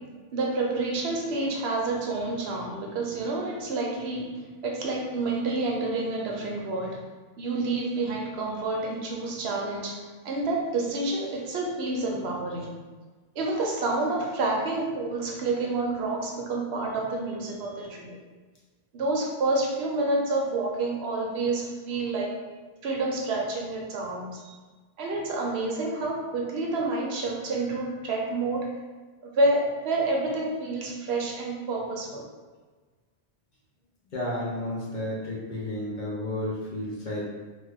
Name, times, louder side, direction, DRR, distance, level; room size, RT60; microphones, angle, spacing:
voice 1, 0.3-7.0 7.4-12.7 13.4-18.2 18.9-22.4 22.8-24.5 25.0-28.7 29.2-32.2, right 2 dB, 70° right, -1 dB, 0.8 m, -29 dB
voice 2, 34.1-37.3, left 1 dB, 50° left, -5 dB, 0.7 m, -32 dB
3.0 x 2.2 x 3.3 m, 1.3 s
omnidirectional pair, 1.2 m